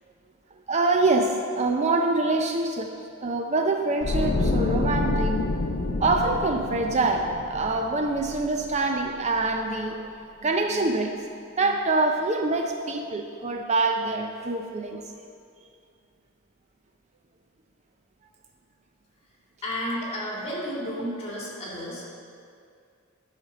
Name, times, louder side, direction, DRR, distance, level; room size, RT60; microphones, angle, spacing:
voice 1, 0.7-5.4 6.0-10.1 10.4-11.2 11.6-15.1, right 3 dB, 35° right, 4 dB, 0.5 m, -25 dB
sound 1, 4.0-9.1 9.4-9.6, left 2 dB, 60° left, 0.6 m, -28 dB
voice 2, 19.6-22.1, equal, 30° left, -4 dB, 2.5 m, -32 dB
10.5 x 5.1 x 6.7 m, 2.4 s
head